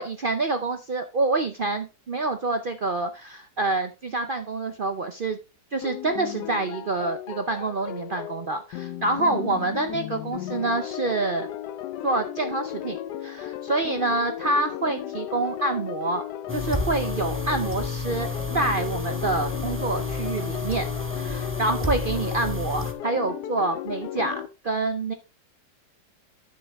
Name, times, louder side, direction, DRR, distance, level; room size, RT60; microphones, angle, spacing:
voice 1, 0.0-5.4 5.7-11.5 12.0-16.2 16.5-20.9 21.2-25.1, right 2 dB, 65° right, 7 dB, 0.5 m, -27 dB
sound 1, 5.8-24.5, left 12 dB, 75° left, 1.2 m, -35 dB
sound 2, 16.5-22.9, left 2 dB, 10° right, 0.6 m, -30 dB
9.8 x 6.4 x 3.4 m, 0.29 s
omnidirectional pair, 1.8 m